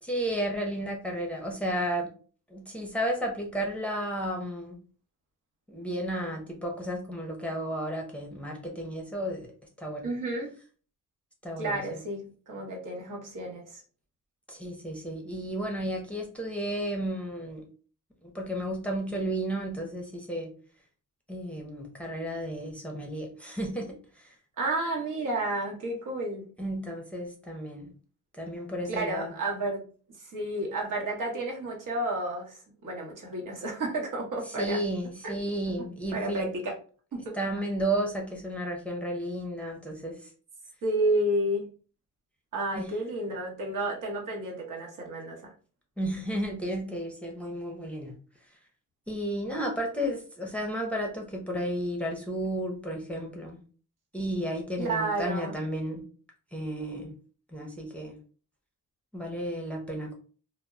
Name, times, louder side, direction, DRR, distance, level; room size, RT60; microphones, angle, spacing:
voice 1, 0.0-2.1 2.5-4.8 5.7-9.5 9.8-10.1 11.4-12.0 14.5-17.6 18.3-20.5 21.3-24.3 26.6-27.9 28.4-29.3 34.6-36.5 37.3-40.2 42.8-42.9 46.0-48.1 49.1-53.6 54.1-56.0 56.5-57.1 57.5-58.2 59.1-60.2, right 1 dB, 5° left, -1 dB, 0.6 m, -33 dB
voice 2, 10.0-10.5 11.6-13.8 24.6-26.5 28.9-29.8 30.2-34.8 35.2-35.4 36.1-36.8 37.1-37.4 40.8-41.7 42.5-45.5 54.8-55.6, right 1 dB, 70° right, 0 dB, 0.9 m, -31 dB
2.1 x 2.0 x 3.5 m, 0.40 s
wide cardioid pair, 130°, 32 cm